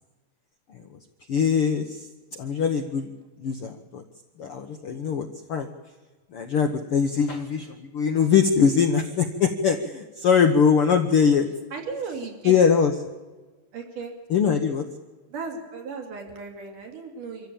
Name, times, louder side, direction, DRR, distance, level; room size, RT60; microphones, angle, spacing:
voice 1, 1.3-3.1 3.4-4.0 4.4-5.7 6.3-11.5 12.4-12.9 14.3-14.9, left 6 dB, 70° left, 6 dB, 1.3 m, -22 dB
voice 2, 11.7-12.6 13.7-14.1 15.3-17.5, right 4 dB, 70° right, 2 dB, 4.6 m, -35 dB
25.0 x 14.5 x 8.7 m, 1.3 s
omnidirectional pair, 3.9 m